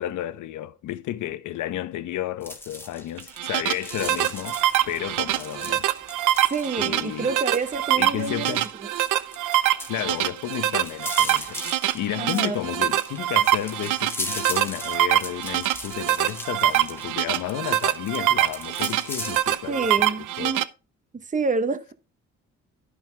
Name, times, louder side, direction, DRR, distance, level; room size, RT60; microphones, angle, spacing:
voice 1, 0.0-4.6 4.9-5.9 6.8-7.3 7.9-8.7 9.9-20.6, left 13 dB, 80° left, 0.9 m, -32 dB
sound 1, 2.4-19.5, left 1 dB, 10° left, 2.1 m, -38 dB
sound 2, 3.2-20.6, right 13 dB, 85° right, 0.6 m, -24 dB
voice 2, 6.5-8.6 12.2-12.6 19.7-20.6 21.3-21.9, right 4 dB, 25° right, 1.1 m, -27 dB
11.5 x 6.1 x 3.3 m
cardioid pair, 90°, 30 cm